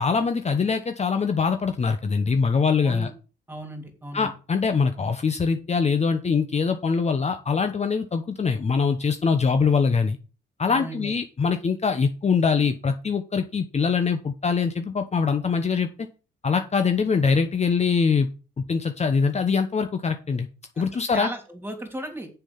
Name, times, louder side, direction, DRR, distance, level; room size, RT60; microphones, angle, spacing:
voice 1, 0.0-3.1 4.1-10.2 10.6-15.9 16.4-18.3 18.6-20.5 20.8-21.3, left 5 dB, 35° left, 7 dB, 1.0 m, -23 dB
voice 2, 3.5-4.3 10.7-11.1 20.7-22.3, right 1 dB, 10° right, 5 dB, 3.1 m, -36 dB
7.0 x 5.8 x 7.2 m, 0.34 s
cardioid pair, 90°, 20 cm